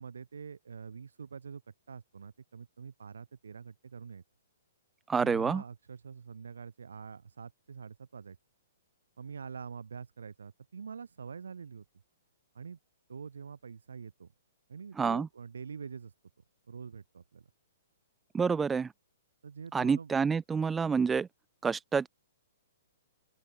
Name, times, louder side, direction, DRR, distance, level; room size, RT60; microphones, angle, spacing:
voice 1, 0.0-1.6 1.9-4.2 5.2-8.4 9.2-11.8 12.5-12.8 13.1-14.3 14.7-16.1 16.7-17.5 19.4-20.1, right 6 dB, 80° right, 6.6 m, -45 dB
voice 2, 5.1-5.6 15.0-15.3 18.3-18.9 19.7-21.3 21.6-22.1, right 5 dB, 10° right, 0.7 m, -28 dB
open air
hypercardioid pair, 125°, 0 cm